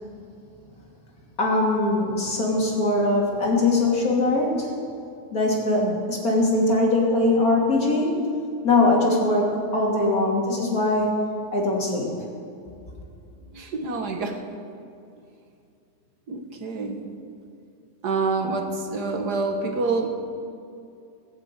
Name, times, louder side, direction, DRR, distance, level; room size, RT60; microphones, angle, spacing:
voice 1, 1.4-4.7 5.3-8.2 8.6-11.1 11.5-12.1, left 2 dB, 65° left, -2 dB, 3.3 m, -21 dB
voice 2, 9.0-9.4 13.5-14.4 16.3-17.0 18.0-20.1, right 3 dB, 80° right, 4 dB, 2.0 m, -27 dB
20.0 x 7.7 x 8.4 m, 2.5 s
omnidirectional pair, 1.7 m